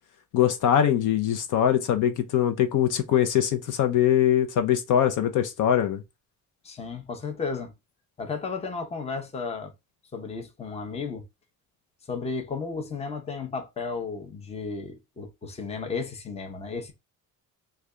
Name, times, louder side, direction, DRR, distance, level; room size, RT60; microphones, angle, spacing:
voice 1, 0.3-6.0, left 10 dB, 60° left, 0.6 m, -22 dB
voice 2, 6.6-7.7 8.2-9.7 10.1-11.2 12.1-16.9, left 4 dB, 20° left, 0.6 m, -33 dB
3.2 x 2.3 x 3.6 m
cardioid pair, 160°, 35 cm